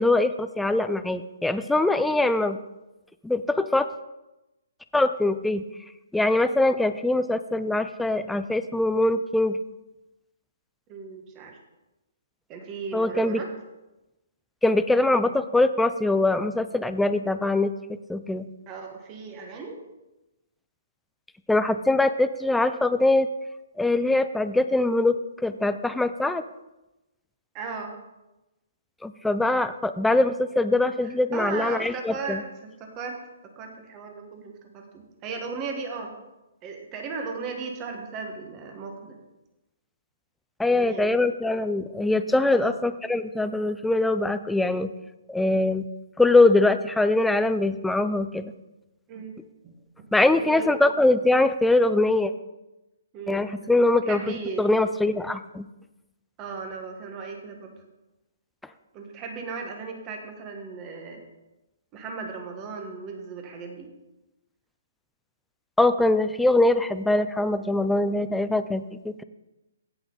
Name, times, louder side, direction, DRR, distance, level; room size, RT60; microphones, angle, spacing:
voice 1, 0.0-2.6 3.2-3.9 4.9-5.6 6.1-9.6 12.9-13.4 14.6-17.7 18.1-18.5 21.5-23.3 23.8-26.4 29.0-32.4 40.6-44.9 45.3-45.9 46.2-48.5 50.1-52.3 53.3-55.7 65.8-69.2, left 2 dB, 5° left, 11 dB, 0.3 m, -22 dB
voice 2, 10.9-11.6 12.5-13.5 18.7-19.8 27.5-28.0 31.0-33.2 33.5-36.1 36.6-39.2 40.7-41.2 42.5-42.8 49.1-49.4 49.6-49.7 50.4-50.9 53.1-53.5 53.9-54.7 56.4-57.7 58.9-61.2 61.9-63.9, right 4 dB, 20° right, 3 dB, 1.5 m, -36 dB
16.5 x 5.7 x 4.0 m, 0.99 s
hypercardioid pair, 165°, 0 cm